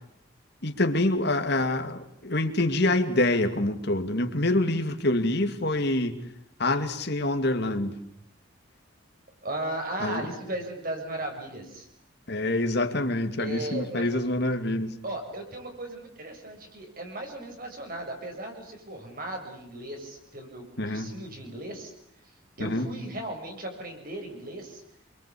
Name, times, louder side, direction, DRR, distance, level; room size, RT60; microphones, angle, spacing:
voice 1, 0.6-6.1 6.6-7.9 10.0-10.3 12.3-15.0 20.8-21.1 22.6-22.9, left 2 dB, 50° left, 7 dB, 2.5 m, -26 dB
voice 2, 9.4-11.9 13.4-14.1 15.0-21.9 22.2-24.8, right 1 dB, 45° right, 3 dB, 6.8 m, -36 dB
28.0 x 23.5 x 8.6 m, 0.72 s
head